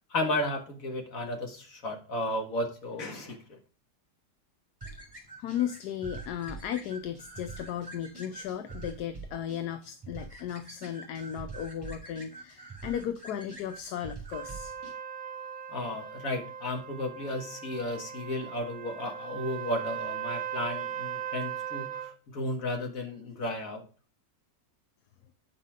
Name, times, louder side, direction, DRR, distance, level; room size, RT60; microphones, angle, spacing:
voice 1, 0.1-3.6 15.7-23.8, left 1 dB, 50° left, 3 dB, 2.0 m, -34 dB
sound 1, 4.8-14.9, right 3 dB, 15° right, 2.6 m, -45 dB
voice 2, 5.4-14.7, left 9 dB, 70° left, 11 dB, 1.1 m, -35 dB
Trumpet, 14.3-22.1, right 9 dB, 80° right, 0.4 m, -38 dB
9.1 x 5.6 x 4.9 m, 0.36 s
omnidirectional pair, 1.9 m